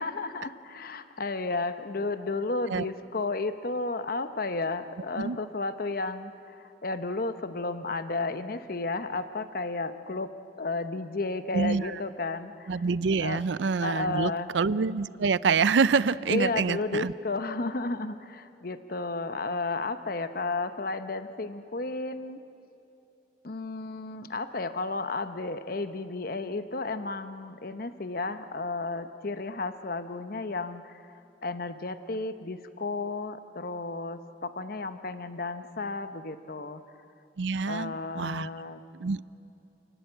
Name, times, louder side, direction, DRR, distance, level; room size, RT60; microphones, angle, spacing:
voice 1, 0.0-10.3 10.6-12.8 13.2-13.4 13.8-14.5 16.3-22.4 23.4-31.1 31.4-36.8 37.7-38.8, left 3 dB, 55° left, 10 dB, 0.9 m, -33 dB
voice 2, 12.7-17.1 37.4-38.5 39.0-39.2, right 5 dB, 85° right, 17 dB, 0.5 m, -26 dB
29.0 x 19.0 x 8.0 m, 2.7 s
head